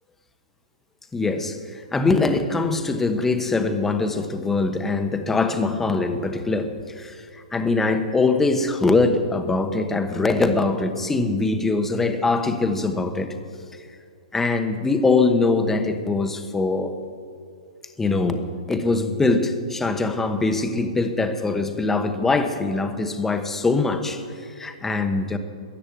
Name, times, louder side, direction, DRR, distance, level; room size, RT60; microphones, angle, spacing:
voice 1, 1.1-7.2 7.5-13.3 14.3-17.0 18.0-24.2 24.6-25.4, left 3 dB, 10° left, 7 dB, 1.0 m, -22 dB
14.0 x 9.9 x 8.7 m, 2.2 s
hypercardioid pair, 145°, 4 cm